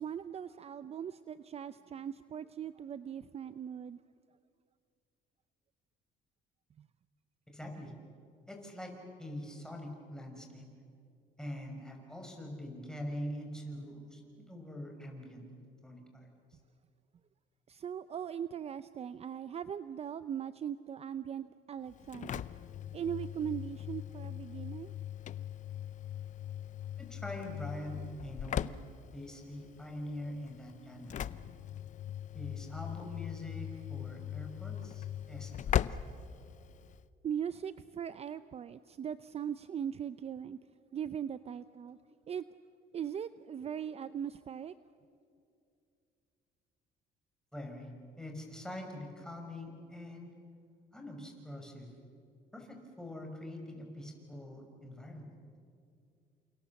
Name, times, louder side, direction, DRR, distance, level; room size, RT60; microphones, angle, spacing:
voice 1, 0.0-4.0 6.8-6.9 17.7-22.4 22.9-24.9 37.2-40.6 40.9-42.0 42.3-42.4 42.9-44.7, right 8 dB, 40° right, 13 dB, 0.6 m, -39 dB
voice 2, 7.5-7.9 8.5-8.9 9.2-10.7 11.4-15.5 15.8-16.3 27.0-28.7 29.1-31.3 32.3-36.0 47.5-47.9 48.2-50.3 50.9-51.9 52.5-55.3, left 1 dB, 5° left, 2 dB, 5.6 m, -44 dB
Engine / Slam, 21.9-37.0, left 10 dB, 45° left, 0.7 m, -40 dB
29.5 x 27.5 x 7.2 m, 2.5 s
cardioid pair, 110°, 17 cm